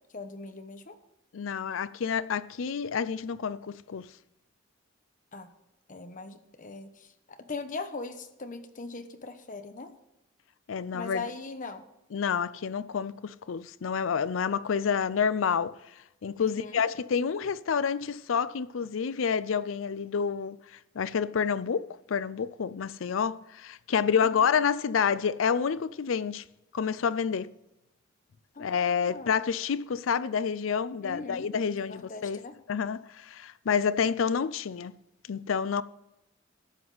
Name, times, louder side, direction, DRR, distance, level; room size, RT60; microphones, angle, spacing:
voice 1, 0.1-1.0 5.3-5.5 5.9-9.9 10.9-11.8 16.4-16.8 24.2-24.4 28.5-29.5 31.0-32.6, left 3 dB, 45° left, 1.0 m, -40 dB
voice 2, 1.3-4.1 10.7-11.3 12.1-15.8 16.2-20.6 21.0-26.4 26.7-27.5 28.6-34.9 35.3-35.8, left 6 dB, 90° left, 0.5 m, -29 dB
12.5 x 7.8 x 4.0 m
head